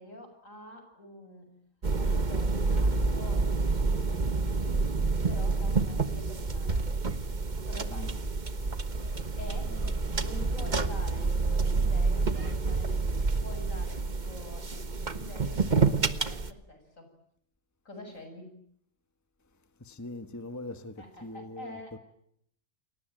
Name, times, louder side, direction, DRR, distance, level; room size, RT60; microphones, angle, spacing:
voice 1, 0.0-1.5 1.9-4.9 5.2-6.9 7.6-8.2 9.1-17.1 17.8-18.6 21.0-22.0, left 1 dB, 70° left, 7.7 m, -47 dB
sound 1, 1.8-16.5, right 4 dB, 35° right, 1.4 m, -28 dB
voice 2, 19.8-21.8, left 2 dB, 15° left, 1.3 m, -42 dB
30.0 x 21.5 x 9.1 m
omnidirectional pair, 1.4 m